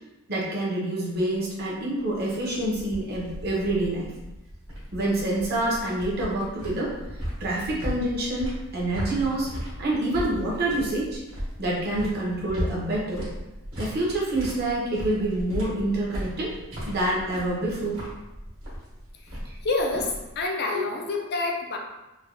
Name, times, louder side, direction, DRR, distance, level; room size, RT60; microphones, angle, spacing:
voice 1, 0.3-4.1 4.9-6.9 7.4-9.5 9.8-11.2 11.6-13.3 13.8-16.5 16.9-18.0 20.7-20.8, right 1 dB, 45° right, -4 dB, 0.8 m, -27 dB
sound 1, 1.6-20.4, equal, 65° right, 1.3 m, -37 dB
voice 2, 19.6-21.8, left 3 dB, 50° left, 1 dB, 0.4 m, -27 dB
3.2 x 2.2 x 2.5 m, 0.98 s
head